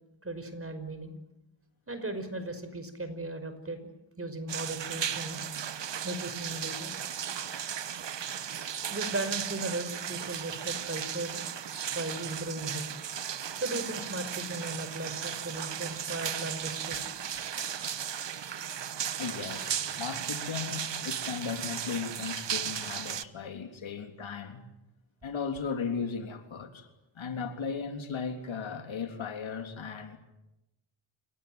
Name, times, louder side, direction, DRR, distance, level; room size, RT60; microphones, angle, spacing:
voice 1, 0.2-1.1 1.9-3.9 4.2-5.4 6.0-6.9 8.9-11.4 11.9-12.9 13.5-17.0, right 2 dB, 30° right, 5.4 m, -37 dB
sound 1, 4.5-23.2, right 9 dB, 65° right, 1.3 m, -36 dB
voice 2, 19.2-24.6 25.2-26.9 27.1-30.2, left 6 dB, 75° left, 3.5 m, -36 dB
29.0 x 18.0 x 9.4 m
cardioid pair, 75°, 47 cm